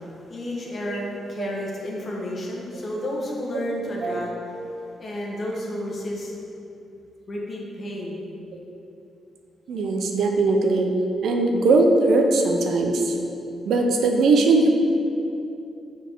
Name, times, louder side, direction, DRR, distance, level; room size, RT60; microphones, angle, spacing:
voice 1, 0.0-6.3 7.3-8.3, left 1 dB, 45° left, -2 dB, 1.1 m, -32 dB
voice 2, 9.7-10.9 11.2-13.2 13.6-14.7, right 3 dB, 75° right, 3 dB, 0.6 m, -20 dB
4.6 x 4.6 x 4.5 m, 2.8 s
cardioid pair, 80°, 0 cm